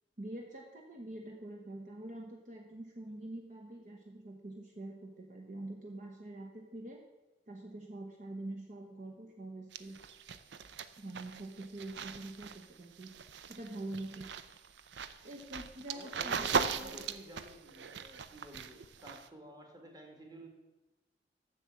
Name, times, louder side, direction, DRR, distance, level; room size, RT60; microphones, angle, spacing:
voice 1, 0.2-7.0 7.5-10.2 11.0-13.1 13.5-14.3 15.2-17.0, right 1 dB, 45° right, 1 dB, 1.0 m, -45 dB
sound 1, 9.7-19.3, right 5 dB, 70° right, 0.6 m, -39 dB
voice 2, 15.9-20.5, equal, 25° right, 2 dB, 1.9 m, -52 dB
7.9 x 7.1 x 7.6 m, 1.1 s
head